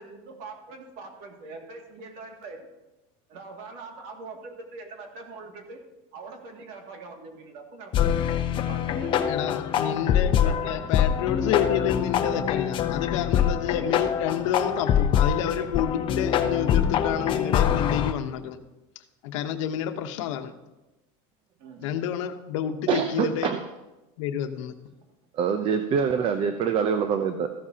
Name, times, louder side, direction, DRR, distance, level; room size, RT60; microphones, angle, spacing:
voice 1, 0.0-2.7 3.3-5.8 6.1-8.3 8.7-9.3 10.4-10.9 11.5-11.7 15.5-15.7 21.6-22.0, right 3 dB, 60° right, 2 dB, 2.3 m, -43 dB
sound 1, 7.9-18.1, left 9 dB, 30° left, 0.7 m, -24 dB
voice 2, 9.3-18.6 19.2-20.5 21.8-23.5 24.2-24.7, left 10 dB, 90° left, 8 dB, 1.0 m, -29 dB
voice 3, 22.9-23.7 25.3-27.5, right 7 dB, 35° right, 8 dB, 0.6 m, -25 dB
14.5 x 12.5 x 2.9 m, 1.0 s
cardioid pair, 160°, 16 cm